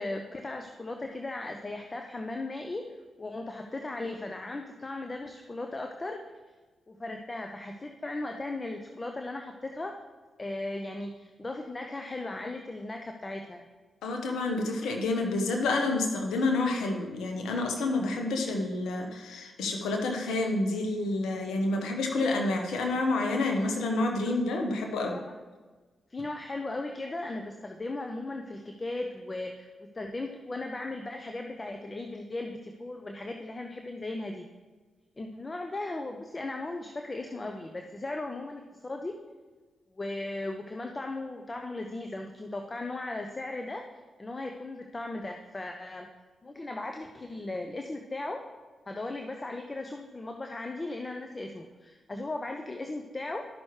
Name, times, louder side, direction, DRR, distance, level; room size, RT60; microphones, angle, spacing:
voice 1, 0.0-2.9 3.2-6.2 6.9-10.0 10.4-13.7 25.1-25.2 26.1-29.7 29.9-34.5 35.2-39.2 39.9-43.9 44.2-46.1 46.4-48.4 48.9-53.5, left 2 dB, 35° left, 4 dB, 0.8 m, -37 dB
voice 2, 14.0-25.2, left 2 dB, 80° left, 2 dB, 1.2 m, -29 dB
13.0 x 6.1 x 3.3 m, 1.3 s
supercardioid pair, 40°, 0 cm